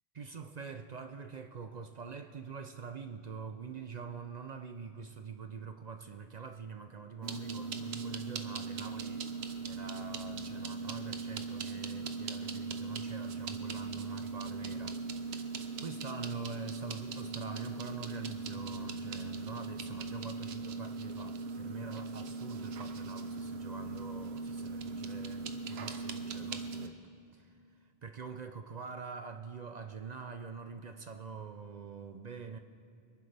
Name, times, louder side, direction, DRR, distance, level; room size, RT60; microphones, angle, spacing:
voice 1, 0.1-9.3 9.7-27.0 27.3-27.5 28.0-32.6, right 5 dB, 50° right, 7 dB, 0.6 m, -45 dB
sound 1, 7.2-26.9, right 4 dB, 75° right, 1.0 m, -39 dB
24.5 x 11.0 x 3.4 m, 2.6 s
omnidirectional pair, 1.1 m